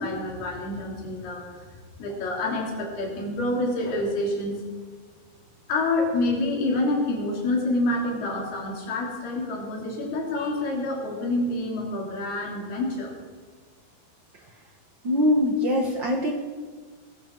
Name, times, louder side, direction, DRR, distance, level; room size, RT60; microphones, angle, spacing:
voice 1, 0.0-1.6 2.0-4.6 5.7-13.2, left 2 dB, 85° left, -1 dB, 5.1 m, -27 dB
voice 2, 15.0-16.3, left 1 dB, 55° right, 1 dB, 1.2 m, -22 dB
20.0 x 15.5 x 4.6 m, 1.5 s
omnidirectional pair, 4.4 m